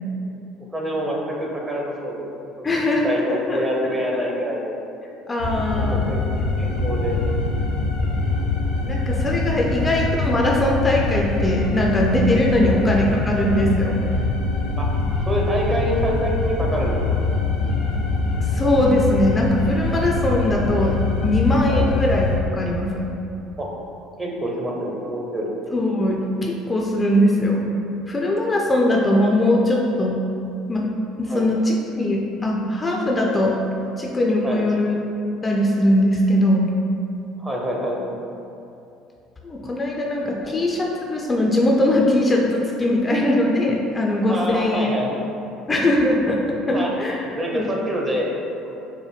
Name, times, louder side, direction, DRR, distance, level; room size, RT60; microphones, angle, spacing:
voice 1, 0.7-2.3 2.6-2.7 3.0-4.8 5.7-6.3 6.6-7.2 12.5-12.7 14.8-14.9 15.3-17.1 21.7-21.9 23.6-23.7 24.2-25.5 31.3-31.5 34.4-34.6 37.4-38.0 40.3-40.6 44.3-45.1 46.7-46.9 47.2-48.8, equal, 20° right, -2 dB, 0.7 m, -26 dB
voice 2, 2.6-3.7 5.3-6.0 8.8-14.0 18.5-22.3 22.5-23.1 25.7-27.6 28.1-30.2 30.7-30.9 31.2-33.6 34.0-35.0 35.4-36.7 39.4-44.9 45.7-47.2 47.5-47.7, left 1 dB, 20° left, -1 dB, 0.4 m, -20 dB
sound 1, 5.4-22.4, left 3 dB, 75° left, 0.6 m, -23 dB
4.8 x 2.1 x 3.1 m, 2.7 s
figure-of-eight pair, 60°, 0 cm